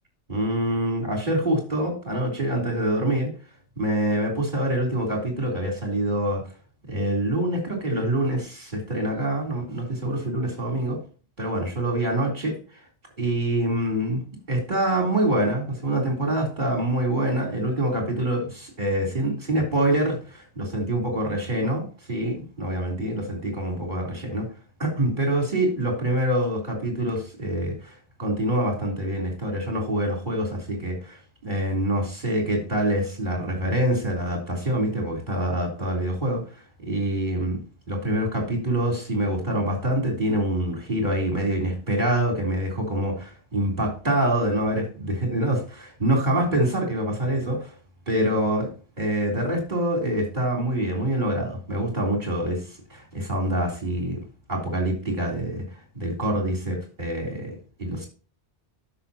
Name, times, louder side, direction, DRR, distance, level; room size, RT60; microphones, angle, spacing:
voice 1, 0.3-3.3 3.8-6.4 6.9-11.0 11.4-12.6 13.2-14.2 14.5-24.5 24.8-27.9 28.2-36.4 36.8-37.6 37.9-47.7 48.1-48.7 49.0-52.6 52.9-54.2 54.5-55.6 55.9-58.1, right 1 dB, 45° right, 1 dB, 3.7 m, -25 dB
13.0 x 6.2 x 2.8 m, 0.37 s
omnidirectional pair, 1.1 m